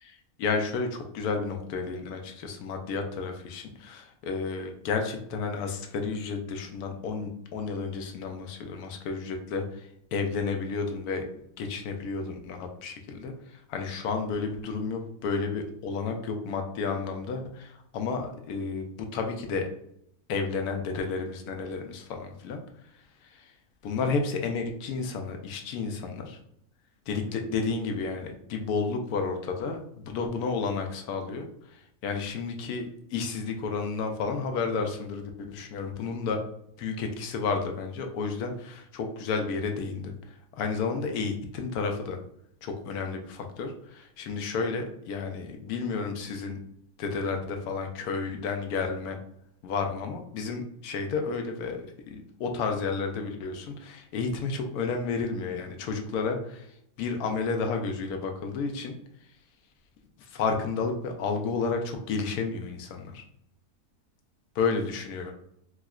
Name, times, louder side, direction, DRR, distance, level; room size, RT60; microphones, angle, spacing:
voice 1, 0.4-11.2 11.6-19.6 20.3-22.6 23.3-23.5 23.8-26.4 27.1-36.4 36.8-40.1 40.5-42.2 42.6-46.6 47.0-49.2 49.6-56.7 57.0-58.9 60.2-63.2 64.6-65.3, left 4 dB, 85° left, 4 dB, 1.1 m, -31 dB
4.6 x 2.1 x 2.3 m, 0.73 s
omnidirectional pair, 1.6 m